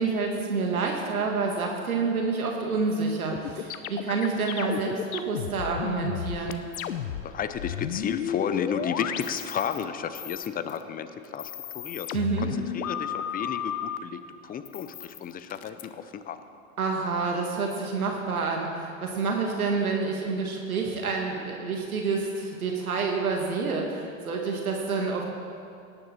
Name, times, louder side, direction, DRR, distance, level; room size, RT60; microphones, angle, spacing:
voice 1, 0.0-6.6 12.1-12.5 16.8-25.2, right 4 dB, 90° right, 1 dB, 1.7 m, -28 dB
sound 1, 3.3-9.8 10.1-10.8 11.2-14.0 14.6-15.8, left 9 dB, 85° left, 0.8 m, -33 dB
voice 2, 7.2-16.4, left 8 dB, 20° left, 10 dB, 0.7 m, -33 dB
17.5 x 9.9 x 4.3 m, 2.5 s
hypercardioid pair, 100°, 42 cm